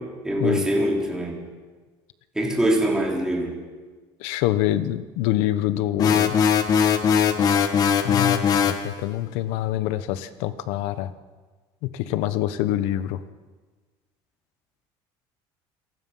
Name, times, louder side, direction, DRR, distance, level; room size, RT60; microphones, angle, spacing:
voice 1, 0.0-1.4 2.4-3.6, right 1 dB, 5° right, -2 dB, 3.6 m, -24 dB
voice 2, 4.2-6.4 8.0-11.1 11.8-13.2, left 13 dB, 80° left, 12 dB, 1.2 m, -26 dB
sound 1, 6.0-8.9, left 7 dB, 35° left, 1.6 m, -20 dB
28.0 x 19.0 x 5.7 m, 1.4 s
cardioid pair, 155°, 11 cm